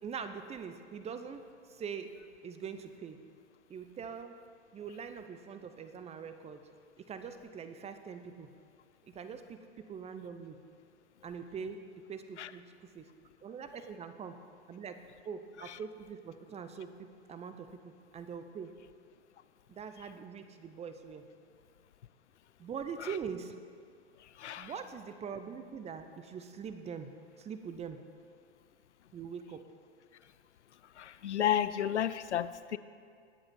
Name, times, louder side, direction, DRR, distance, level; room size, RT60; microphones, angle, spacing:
voice 1, 0.0-1.4 1.7-2.2 2.4-3.2 3.7-4.3 4.7-6.6 7.0-8.5 9.1-10.6 11.2-11.8 12.1-13.1 13.4-14.3 14.7-15.0 15.2-18.7 19.7-21.2 22.6-23.5 24.6-27.1 27.4-28.0 29.1-29.6, right 6 dB, 20° right, 9 dB, 0.8 m, -43 dB
voice 2, 24.2-24.7 30.9-32.8, left 10 dB, 80° left, 15 dB, 0.6 m, -32 dB
20.0 x 7.8 x 4.4 m, 2.2 s
hypercardioid pair, 100°, 34 cm